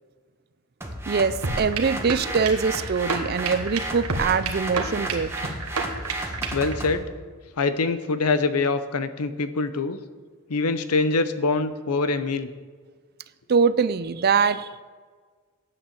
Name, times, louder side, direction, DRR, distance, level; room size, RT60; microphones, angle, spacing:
sound 1, 0.8-7.0, right 1 dB, 10° right, 1.3 m, -34 dB
voice 1, 1.1-5.3 13.5-14.8, right 5 dB, 45° right, 15 dB, 0.4 m, -23 dB
sound 2, 1.4-6.8, right 3 dB, 80° right, 1.4 m, -31 dB
voice 2, 6.5-7.0 7.6-10.0 10.5-12.5, left 3 dB, 85° left, 11 dB, 0.8 m, -24 dB
9.9 x 8.6 x 7.3 m, 1.6 s
head